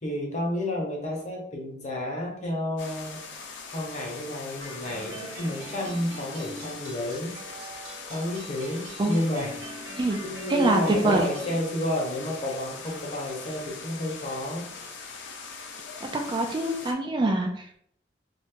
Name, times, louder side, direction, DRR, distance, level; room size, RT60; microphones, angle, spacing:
voice 1, 0.0-3.2 3.7-7.4 8.1-9.8 10.2-14.7, left 1 dB, 40° left, -1 dB, 0.9 m, -31 dB
sound 1, 2.8-16.9, left 4 dB, 85° left, 0.6 m, -41 dB
sound 2, 4.6-11.6, right 2 dB, 70° right, 0.7 m, -43 dB
voice 2, 10.5-11.3 16.0-17.8, right 2 dB, 25° right, 3 dB, 0.3 m, -24 dB
2.6 x 2.4 x 3.6 m, 0.67 s
head